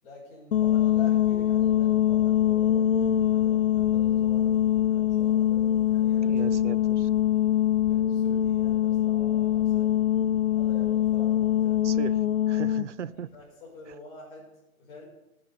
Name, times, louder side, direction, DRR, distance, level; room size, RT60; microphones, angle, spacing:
voice 1, 0.0-6.5 7.8-9.9 10.5-11.8 13.0-14.5 14.8-15.0, left 2 dB, 40° left, -4 dB, 6.4 m, -47 dB
sound 1, 0.5-12.9, left 11 dB, 60° left, 0.7 m, -23 dB
voice 2, 6.2-7.1 11.8-12.2 12.5-13.3, right 9 dB, 55° right, 19 dB, 0.5 m, -37 dB
19.0 x 9.5 x 4.4 m, 0.87 s
hypercardioid pair, 145°, 44 cm